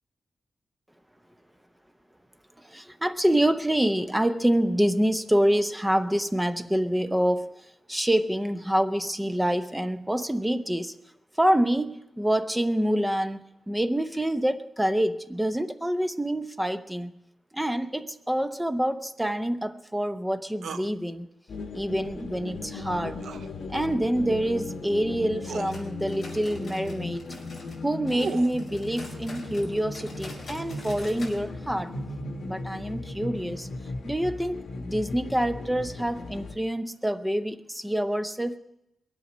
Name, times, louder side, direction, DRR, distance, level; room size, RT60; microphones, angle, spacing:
voice 1, 2.6-7.6 7.9-10.9 11.4-17.1 17.5-21.3 21.7-23.2 23.7-27.4 27.8-31.9 32.4-33.7 34.0-38.6, right 1 dB, 5° right, 10 dB, 0.7 m, -26 dB
sound 1, 20.6-20.9 23.2-23.5 24.8-24.9 25.4-25.7 27.7-28.6, right 6 dB, 80° right, 0.5 m, -36 dB
sound 2, 21.5-36.5, left 2 dB, 65° left, 1.3 m, -37 dB
sound 3, 25.5-27.8 28.1-31.4 31.7-31.8 32.1-32.2 32.8-32.9, left 2 dB, 20° left, 5.1 m, -46 dB
22.0 x 8.2 x 6.1 m, 0.86 s
wide cardioid pair, 155°, 0 cm